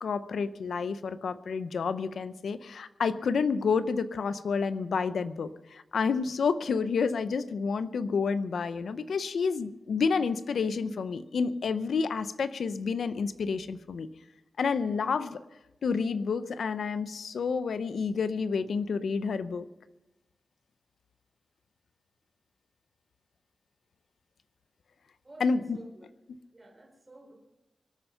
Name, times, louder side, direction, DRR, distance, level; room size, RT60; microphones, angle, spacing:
voice 1, 0.0-14.1 14.6-15.4 15.8-19.7 25.4-25.8, left 5 dB, 80° left, 13 dB, 0.6 m, -29 dB
voice 2, 25.2-26.1 26.5-27.3, right 2 dB, 20° right, 0 dB, 3.4 m, -50 dB
24.5 x 8.9 x 5.6 m, 0.99 s
wide cardioid pair, 150°, 0 cm